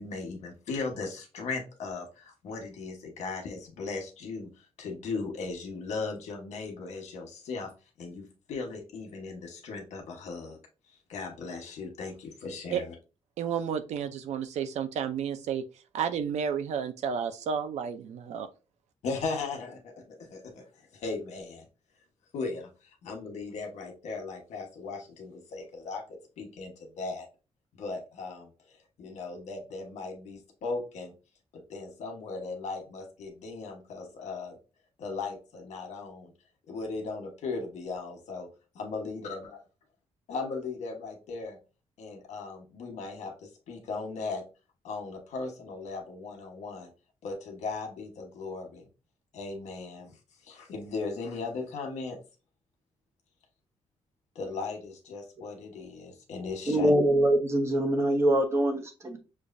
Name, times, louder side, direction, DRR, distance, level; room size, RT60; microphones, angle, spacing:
voice 1, 0.0-7.7 8.0-10.6 11.1-12.9 19.0-21.7 22.3-27.3 27.7-31.1 31.5-34.5 35.0-36.3 36.7-38.5 38.7-39.6 40.3-41.6 42.0-44.4 44.8-46.9 47.2-48.9 49.3-50.2 50.4-52.2 54.3-56.9, left 4 dB, 85° left, 1.2 m, -37 dB
voice 2, 13.4-15.6 15.9-18.5, right 7 dB, 80° right, 0.5 m, -31 dB
voice 3, 56.7-59.2, right 1 dB, 25° right, 0.9 m, -24 dB
6.3 x 2.4 x 2.6 m
wide cardioid pair, 150°, 11 cm